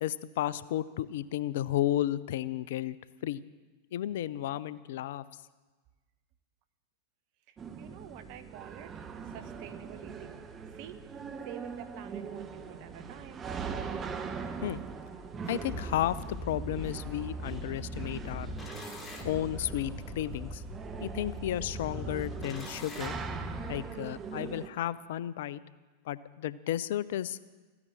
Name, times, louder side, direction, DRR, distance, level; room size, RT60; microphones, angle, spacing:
voice 1, 0.0-3.0 3.2-3.4 3.9-5.2 14.6-14.8 15.5-18.5 19.2-20.6 21.0-23.1 23.7-25.6 26.1-27.4, left 12 dB, 55° left, 18 dB, 0.5 m, -33 dB
voice 2, 7.5-11.1 11.4-13.5, right 11 dB, 45° right, 12 dB, 1.2 m, -48 dB
sound 1, 7.6-24.7, right 5 dB, 25° right, 1.2 m, -41 dB
sound 2, 15.6-23.8, equal, 10° left, 2.8 m, -41 dB
14.5 x 9.8 x 8.6 m, 1.3 s
figure-of-eight pair, 90°, 0 cm